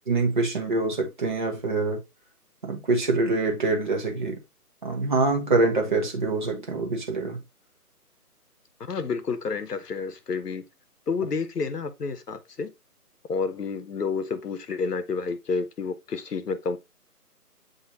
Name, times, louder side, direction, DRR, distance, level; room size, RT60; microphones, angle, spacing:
voice 1, 0.1-2.0 2.6-4.4 4.8-7.4, right 3 dB, 30° right, 0.8 m, -25 dB
voice 2, 8.8-10.6 11.1-12.7 13.3-16.8, left 4 dB, 80° left, 0.9 m, -30 dB
7.4 x 2.7 x 2.6 m
figure-of-eight pair, 155°, 46 cm